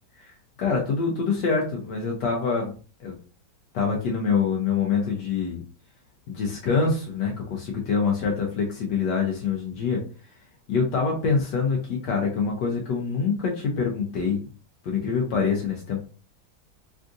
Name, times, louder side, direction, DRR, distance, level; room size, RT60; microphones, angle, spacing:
voice 1, 0.6-2.7 3.0-3.1 3.7-5.6 6.3-10.0 10.7-14.4 14.8-16.0, left 5 dB, 80° left, 0 dB, 1.3 m, -25 dB
3.6 x 2.4 x 2.5 m, 0.37 s
omnidirectional pair, 1.9 m